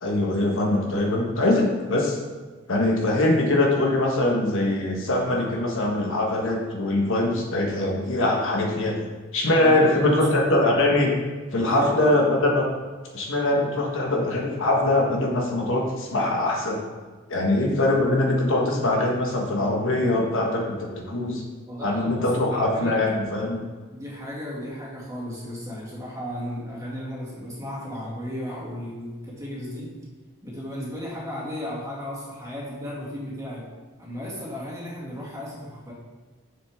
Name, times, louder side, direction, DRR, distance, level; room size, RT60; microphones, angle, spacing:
voice 1, 0.0-2.2 2.7-9.0 9.3-11.1 11.5-12.7 13.1-16.8 17.3-21.4 21.8-23.6, left 1 dB, 60° left, 0 dB, 1.2 m, -22 dB
voice 2, 9.6-10.3 11.6-12.0 19.9-20.0 21.7-23.1 23.9-29.9 30.4-33.7 34.0-35.9, equal, 15° right, -6 dB, 2.1 m, -35 dB
7.2 x 6.5 x 3.6 m, 1.4 s
head